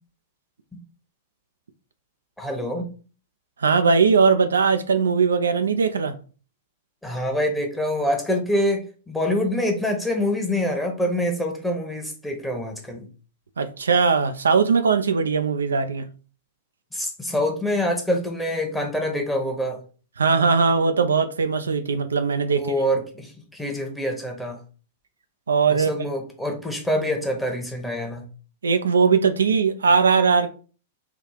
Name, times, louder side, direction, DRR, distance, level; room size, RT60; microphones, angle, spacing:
voice 1, 2.4-2.9 7.0-13.1 16.9-19.8 22.5-24.6 25.7-28.2, left 1 dB, 5° left, 1.1 m, -25 dB
voice 2, 3.6-6.1 13.6-16.0 20.2-22.6 25.5-25.9 28.6-30.5, right 5 dB, 80° right, 0.4 m, -20 dB
3.6 x 2.4 x 4.5 m
figure-of-eight pair, 105°, 0 cm